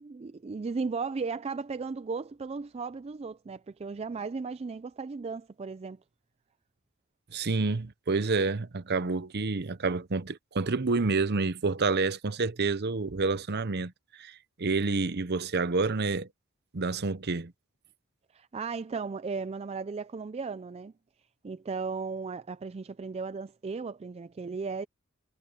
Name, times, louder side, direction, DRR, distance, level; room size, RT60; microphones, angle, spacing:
voice 1, 0.0-6.0 18.3-20.9 21.4-24.9, right 4 dB, 30° right, 0.3 m, -36 dB
voice 2, 7.3-13.9 14.2-16.3 16.7-17.5, right 3 dB, 50° right, 0.8 m, -28 dB
head